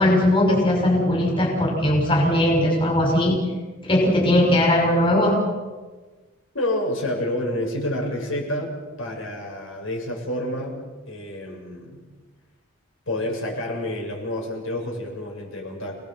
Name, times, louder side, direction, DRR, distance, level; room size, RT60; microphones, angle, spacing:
voice 1, 0.0-3.4 3.8-5.4, left 1 dB, 25° left, -1 dB, 5.8 m, -19 dB
voice 2, 6.5-10.8 11.1-12.0 13.1-16.0, left 1 dB, 75° left, 0 dB, 6.9 m, -29 dB
29.5 x 19.0 x 7.6 m, 1.3 s
head